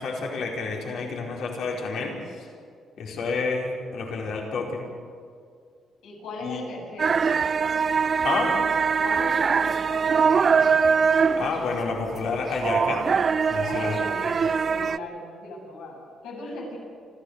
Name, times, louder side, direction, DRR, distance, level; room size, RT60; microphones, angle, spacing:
voice 1, 0.0-2.5 3.0-4.8 6.4-6.6 8.2-8.5 11.4-13.1 13.5-14.0, left 4 dB, 70° left, -1 dB, 4.7 m, -29 dB
voice 2, 6.0-7.2 9.0-10.9 13.6-16.8, left 2 dB, 85° left, -2 dB, 8.0 m, -38 dB
sound 1, 7.0-15.0, right 6 dB, 40° right, 0.5 m, -22 dB
28.0 x 14.0 x 8.2 m, 2.2 s
cardioid pair, 90°, 0 cm